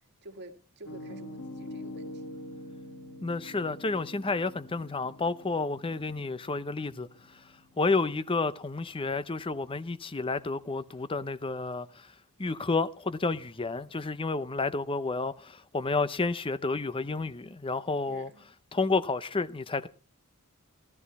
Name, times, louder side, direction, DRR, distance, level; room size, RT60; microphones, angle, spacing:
voice 1, 0.2-2.4 18.1-18.5, right 1 dB, 50° right, 2.0 m, -49 dB
Piano, 0.9-8.7, left 1 dB, 65° left, 1.6 m, -45 dB
voice 2, 3.2-7.1 7.8-12.1 12.4-18.3 18.7-19.9, left 3 dB, 25° left, 0.6 m, -30 dB
15.5 x 13.5 x 4.1 m
head